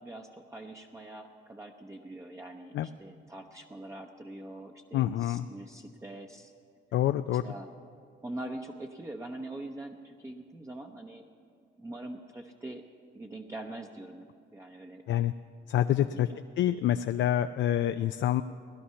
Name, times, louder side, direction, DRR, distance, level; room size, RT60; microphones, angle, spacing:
voice 1, 0.0-6.5 7.4-7.7 8.2-11.3 11.8-12.8 13.1-15.0 16.0-16.4, right 1 dB, 15° right, 1 dB, 0.8 m, -43 dB
voice 2, 4.9-5.5 6.9-7.4 15.1-15.3 15.7-16.3 16.6-18.4, left 12 dB, 70° left, 10 dB, 0.4 m, -27 dB
17.5 x 11.5 x 5.7 m, 2.2 s
cardioid pair, 90°, 20 cm